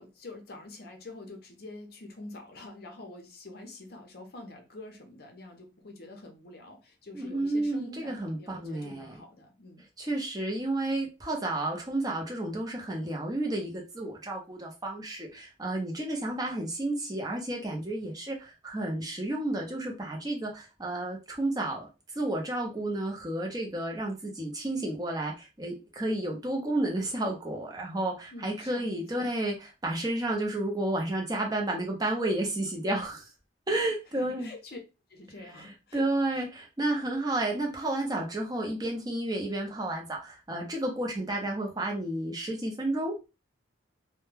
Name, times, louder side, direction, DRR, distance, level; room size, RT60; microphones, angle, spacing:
voice 1, 0.0-9.8 28.3-29.5 34.1-34.8 35.1-36.0 36.3-36.5, left 2 dB, 55° left, 0.6 m, -46 dB
voice 2, 7.1-9.1 10.0-21.9 22.1-29.5 29.8-33.2 33.7-34.5 35.6-35.7 35.9-43.1, right 1 dB, 20° right, 0.6 m, -31 dB
2.2 x 2.1 x 3.2 m
head